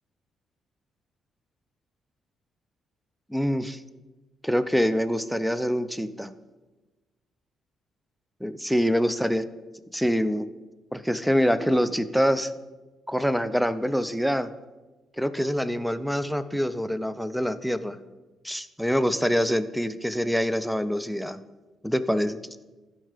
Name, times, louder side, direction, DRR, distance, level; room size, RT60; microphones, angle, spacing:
voice 1, 3.3-3.8 4.4-6.3 8.4-9.4 9.9-10.5 10.9-12.5 13.1-14.5 15.2-18.0 18.4-21.4 21.8-22.4, equal, ahead, 13 dB, 0.5 m, -25 dB
13.5 x 5.5 x 3.4 m, 1.2 s
cardioid pair, 90°, 0 cm